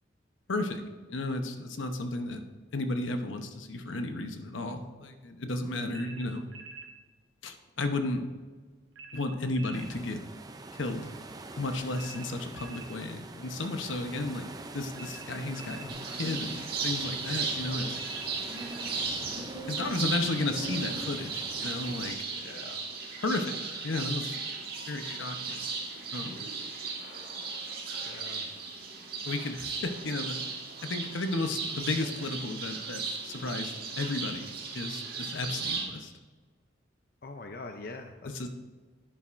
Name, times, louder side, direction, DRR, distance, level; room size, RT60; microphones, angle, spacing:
voice 1, 0.5-0.8 1.1-2.5 2.7-6.4 7.4-8.2 9.1-10.2 10.8-11.1 11.6-14.5 14.7-18.0 19.7-22.5 23.2-23.6 23.8-24.4 24.9-25.6 26.1-26.4 29.2-30.6 30.8-36.1 38.3-38.5, left 2 dB, 80° left, 6 dB, 0.9 m, -33 dB
sound 1, 5.9-6.9 9.0-9.9 12.0-12.9 15.0-15.9 18.0-18.9, right 3 dB, 80° right, 1.1 m, -46 dB
sound 2, 9.7-22.1, right 2 dB, 20° right, 0.4 m, -45 dB
sound 3, 15.9-35.8, right 4 dB, 50° right, 1.8 m, -36 dB
voice 2, 22.4-22.9 28.0-28.5 37.2-38.5, left 3 dB, 50° left, 4 dB, 0.5 m, -44 dB
11.0 x 8.9 x 2.6 m, 1.4 s
head